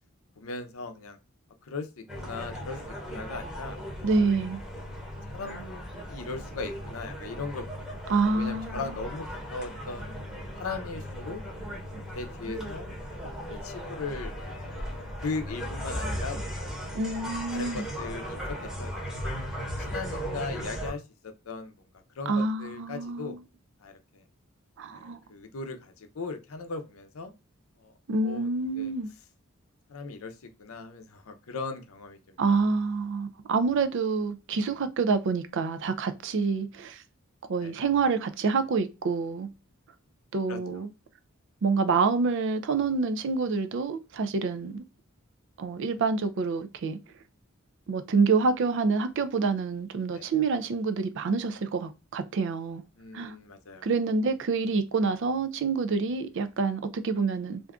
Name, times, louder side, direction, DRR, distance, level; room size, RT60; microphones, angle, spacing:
voice 1, 0.4-1.2 1.7-2.8 3.1-3.8 5.3-7.9 8.3-10.1 10.6-11.4 12.1-12.9 13.5-14.8 15.2-16.7 17.5-18.9 19.2-19.4 19.8-21.7 22.2-23.4 23.8-24.2 24.9-27.3 27.8-27.9 28.2-28.5 28.8-28.9 29.9-30.3 30.6-32.2 37.6-37.7 40.5-40.6 50.1-50.3 53.0-53.9, left 4 dB, 75° left, 0.6 m, -38 dB
sound 1, 2.1-20.9, equal, 5° right, 0.9 m, -37 dB
voice 2, 4.0-4.6 8.1-9.0 16.9-17.8 22.3-23.4 24.8-25.2 28.1-29.1 32.4-37.0 37.5-39.5 40.3-40.9 41.6-44.8 45.6-47.0 47.9-52.8 53.1-53.4 53.8-57.6, right 4 dB, 60° right, 0.4 m, -27 dB
2.6 x 2.3 x 3.5 m
head